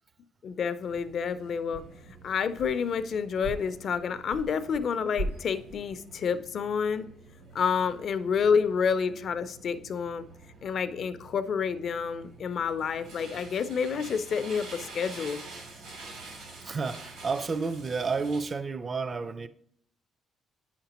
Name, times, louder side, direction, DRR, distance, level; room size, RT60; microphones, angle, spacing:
voice 1, 0.4-1.9 2.2-7.1 7.5-10.3 10.6-15.4, left 6 dB, 55° left, 0.4 m, -29 dB
sound 1, 0.8-18.4, right 3 dB, 85° right, 3.0 m, -48 dB
sound 2, 1.0-1.4 1.7-3.1 3.4-4.8 5.2-6.1, right 1 dB, 65° right, 1.1 m, -39 dB
voice 2, 16.6-19.5, right 4 dB, 35° right, 0.4 m, -31 dB
8.8 x 5.7 x 2.9 m
cardioid pair, 110°, 0 cm